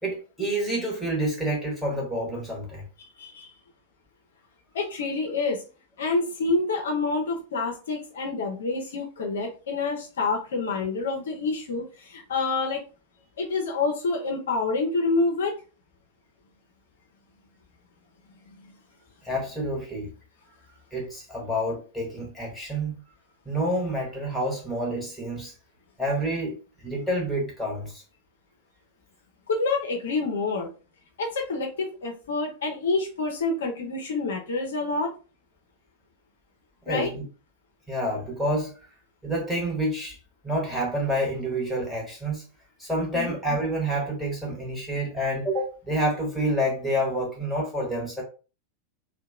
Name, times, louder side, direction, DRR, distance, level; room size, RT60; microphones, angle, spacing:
voice 1, 0.0-2.9 19.2-20.1 20.9-22.9 23.4-25.5 26.0-28.0 36.9-37.2 37.9-38.7 39.2-40.2 40.4-42.4 42.8-48.2, right 1 dB, ahead, 1.1 m, -28 dB
voice 2, 3.2-3.5 4.7-5.6 6.0-12.8 13.4-15.5 18.5-18.7 29.5-30.7 31.2-35.1 36.9-37.1 43.1-43.3, left 3 dB, 60° left, 0.6 m, -27 dB
2.8 x 2.1 x 2.3 m
figure-of-eight pair, 90°, 0 cm